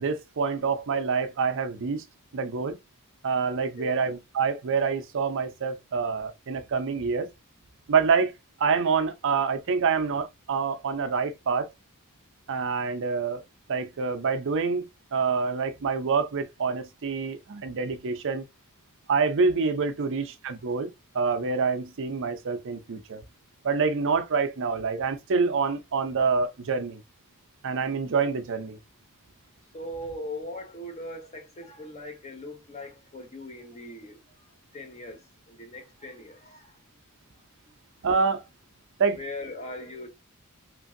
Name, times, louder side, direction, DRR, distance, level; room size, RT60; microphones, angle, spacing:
voice 1, 0.0-2.0 2.3-2.8 3.2-7.3 7.9-8.3 8.6-11.7 12.5-13.4 13.7-18.4 19.1-23.2 23.6-27.0 27.6-28.8 38.0-38.4 39.0-39.2, right 5 dB, 60° right, 0.5 m, -26 dB
voice 2, 3.6-3.9 29.7-34.2 34.7-36.7 39.1-40.1, left 1 dB, 30° left, 0.9 m, -40 dB
3.0 x 2.6 x 2.5 m
head